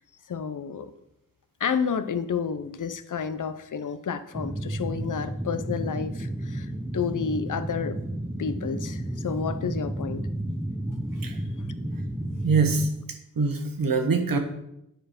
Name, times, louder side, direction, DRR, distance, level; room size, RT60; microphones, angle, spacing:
voice 1, 0.3-0.9 1.6-6.7 6.9-8.0 8.4-10.2, left 6 dB, 65° left, 12 dB, 0.6 m, -30 dB
sound 1, 4.3-12.9, right 1 dB, 5° right, 0.5 m, -32 dB
voice 2, 12.4-12.9 13.4-14.4, right 4 dB, 90° right, 5 dB, 1.1 m, -23 dB
9.2 x 4.6 x 5.0 m, 0.83 s
wide cardioid pair, 80°, 33 cm